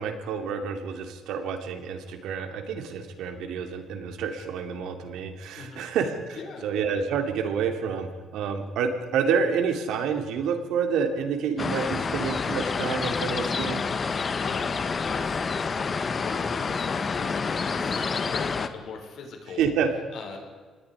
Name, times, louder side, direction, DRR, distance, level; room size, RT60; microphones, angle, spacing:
voice 1, 0.0-6.4 6.6-13.8 19.6-19.9, right 6 dB, 90° right, 6 dB, 2.7 m, -28 dB
voice 2, 6.3-6.7 14.1-15.7 16.0-19.6 19.9-20.4, left 5 dB, 70° left, 2 dB, 6.0 m, -40 dB
sound 1, 11.6-18.7, left 5 dB, 40° left, 1.5 m, -28 dB
26.5 x 20.0 x 5.0 m, 1.5 s
cardioid pair, 90°, 0 cm